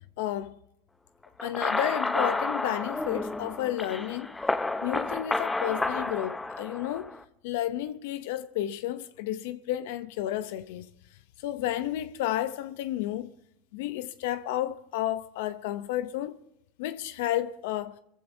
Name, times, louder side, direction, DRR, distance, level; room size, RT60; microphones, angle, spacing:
voice 1, 0.2-0.5 1.4-4.3 4.8-7.1 7.4-10.9 11.4-13.3 13.7-16.4 16.8-18.0, left 13 dB, 75° left, 0.7 m, -31 dB
sound 1, 1.4-7.2, left 2 dB, 10° left, 0.8 m, -31 dB
22.0 x 15.0 x 2.7 m
supercardioid pair, 105°, 0 cm